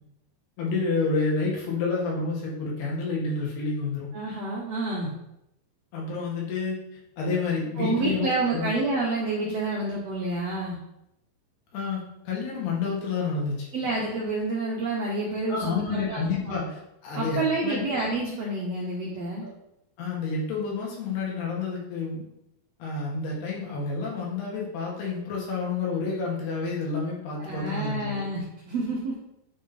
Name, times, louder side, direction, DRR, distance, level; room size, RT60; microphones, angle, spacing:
voice 1, 0.6-4.1 5.9-6.8 7.2-8.7 11.7-13.7 15.5-16.8 17.0-17.8 20.0-22.2 22.8-28.2, left 4 dB, 90° left, -3 dB, 3.9 m, -29 dB
voice 2, 4.1-5.1 7.8-10.8 13.7-16.5 17.1-19.5 27.4-29.1, right 2 dB, 75° right, -4 dB, 1.5 m, -29 dB
9.2 x 4.4 x 4.1 m, 0.83 s
omnidirectional pair, 4.4 m